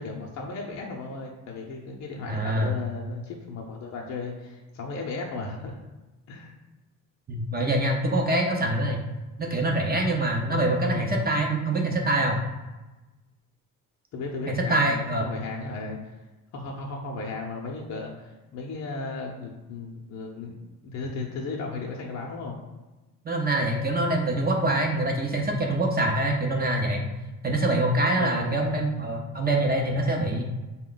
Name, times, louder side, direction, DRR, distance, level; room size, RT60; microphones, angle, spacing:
voice 1, 0.0-5.8 6.3-6.5 10.5-11.1 14.1-16.2 16.5-20.6 20.9-22.6 28.2-28.7, left 3 dB, 55° left, 0 dB, 0.7 m, -35 dB
voice 2, 2.3-2.8 7.3-9.0 9.4-12.4 14.7-15.2 23.3-27.0 27.4-30.4, right 1 dB, 30° right, 1 dB, 0.6 m, -25 dB
4.2 x 2.2 x 3.8 m, 1.1 s
cardioid pair, 105°, 34 cm